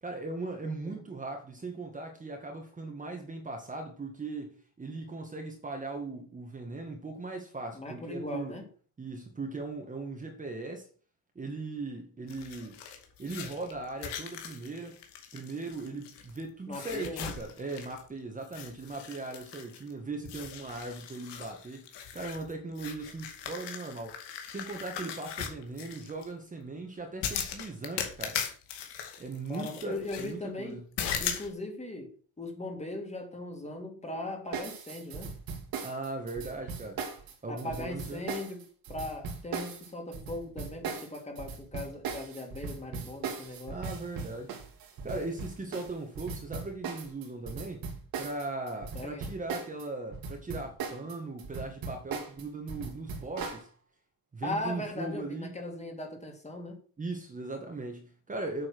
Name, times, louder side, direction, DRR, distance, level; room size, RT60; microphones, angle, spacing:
voice 1, 0.0-8.6 9.0-10.9 11.4-12.8 13.2-15.0 15.3-28.4 29.2-30.9 35.8-37.0 37.4-38.3 43.7-44.5 45.0-47.8 48.2-53.7 54.3-55.5 57.0-58.7, right 3 dB, 20° right, 1.7 m, -39 dB
voice 2, 0.6-1.0 7.7-8.7 16.7-17.3 29.5-30.8 31.2-32.1 32.4-35.3 37.5-38.6 38.9-43.8 48.9-49.3 54.4-56.8, left 2 dB, 15° left, 2.6 m, -39 dB
sound 1, 12.3-16.4 16.7-18.1 18.4-19.9 20.2-26.2 27.2-30.3 31.0-31.5, left 8 dB, 80° left, 2.4 m, -39 dB
sound 2, 34.5-49.9 50.1-53.6, right 5 dB, 55° right, 2.5 m, -38 dB
8.4 x 6.9 x 6.2 m
cardioid pair, 145°, 41 cm